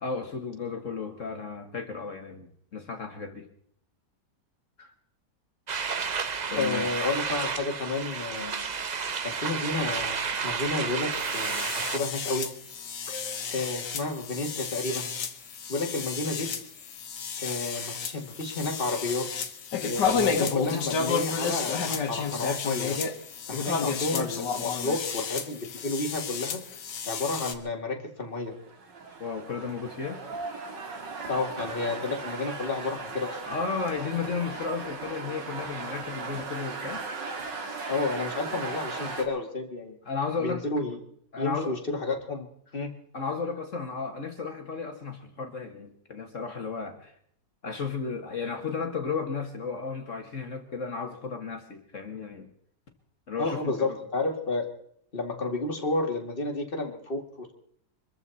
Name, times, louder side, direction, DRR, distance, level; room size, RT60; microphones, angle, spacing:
voice 1, 0.0-3.5 4.8-4.9 6.5-6.9 13.1-13.4 29.2-30.2 33.5-37.0 40.0-40.6 41.3-41.8 43.1-47.1 47.6-52.5 53.3-54.0, left 5 dB, 45° left, 5 dB, 1.7 m, -34 dB
sound 1, 5.7-12.0, right 6 dB, 60° right, 0.4 m, -31 dB
voice 2, 6.6-8.7 9.2-12.5 13.5-15.1 15.7-16.5 17.4-19.5 19.9-23.0 23.5-26.6 27.1-28.5 31.3-33.4 37.9-40.0 40.4-41.0 41.4-42.5 42.7-42.9 53.4-54.7 55.1-57.5, left 3 dB, 30° left, 2 dB, 2.4 m, -31 dB
sound 2, 11.1-27.5, left 6 dB, 75° left, 2.0 m, -32 dB
sound 3, 28.5-39.3, right 4 dB, 80° right, 2.7 m, -37 dB
24.0 x 14.0 x 4.1 m, 0.67 s
omnidirectional pair, 1.9 m